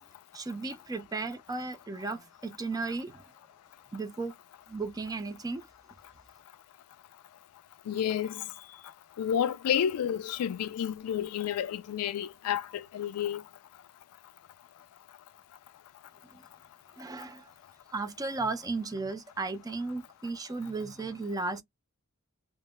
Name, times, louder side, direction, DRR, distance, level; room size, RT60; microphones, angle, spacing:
voice 1, 0.3-3.2 3.9-4.3 4.7-5.7 16.3-16.4 17.0-17.5 17.9-21.6, right 3 dB, 15° right, 0.3 m, -35 dB
voice 2, 7.9-8.4 9.2-13.4, left 9 dB, 80° left, 0.3 m, -30 dB
2.1 x 2.0 x 3.0 m
head